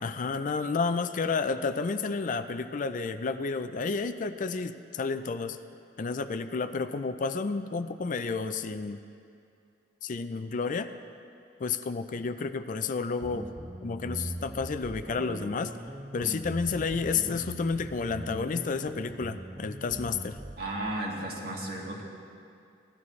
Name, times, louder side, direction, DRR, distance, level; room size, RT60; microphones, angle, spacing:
voice 1, 0.0-5.6 6.0-9.0 10.0-10.9 11.6-13.5 13.8-15.7 16.1-20.4, left 4 dB, 45° left, 11 dB, 0.4 m, -31 dB
sound 1, 13.2-20.6, right 1 dB, 10° right, 0.5 m, -40 dB
voice 2, 20.6-22.0, right 1 dB, 60° right, -3 dB, 2.1 m, -34 dB
17.5 x 12.0 x 3.2 m, 2.5 s
head